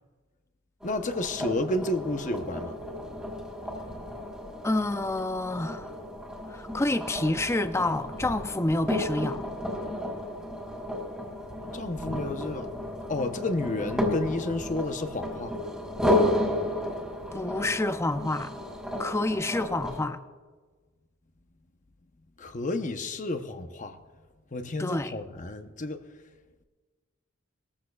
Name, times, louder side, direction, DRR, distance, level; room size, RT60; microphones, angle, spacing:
voice 1, 0.8-2.8 11.7-12.7 13.1-15.5 22.4-24.0 24.5-26.0, left 2 dB, 40° left, 0.8 m, -31 dB
sound 1, 0.8-20.0, left 1 dB, 5° right, 2.3 m, -33 dB
voice 2, 4.6-5.9 6.5-9.4 17.3-18.5 19.0-20.2 24.8-25.1, left 2 dB, 15° left, 0.5 m, -28 dB
21.0 x 14.5 x 2.4 m
head